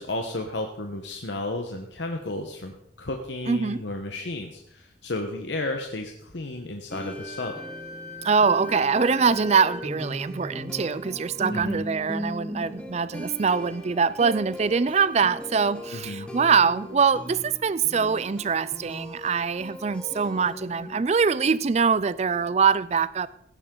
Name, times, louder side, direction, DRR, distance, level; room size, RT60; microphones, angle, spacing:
voice 1, 0.0-7.6 11.5-11.8 15.9-16.3, left 2 dB, 75° left, 1.1 m, -33 dB
voice 2, 3.5-3.8 8.2-23.3, right 5 dB, 35° right, 0.4 m, -23 dB
sound 1, 6.9-21.0, equal, 5° left, 1.4 m, -38 dB
Wind instrument woodwind instrument, 7.1-9.9, left 4 dB, 40° left, 1.9 m, -41 dB
16.5 x 10.0 x 3.9 m
head